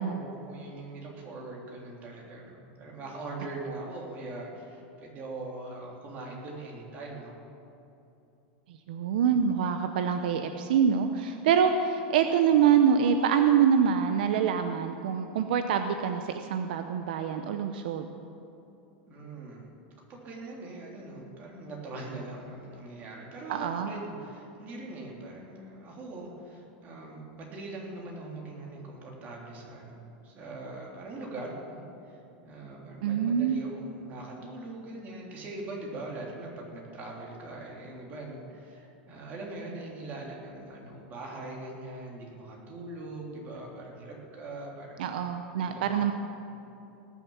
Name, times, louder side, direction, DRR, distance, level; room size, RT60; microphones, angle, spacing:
voice 1, 0.0-7.4 19.1-19.7 20.1-45.1 45.6-46.1, right 2 dB, 35° right, -1 dB, 3.3 m, -41 dB
voice 2, 8.9-18.1 23.5-23.9 33.0-33.6 45.0-46.1, right 7 dB, 80° right, 7 dB, 0.7 m, -25 dB
19.0 x 7.3 x 7.2 m, 2.8 s
supercardioid pair, 140°, 5 cm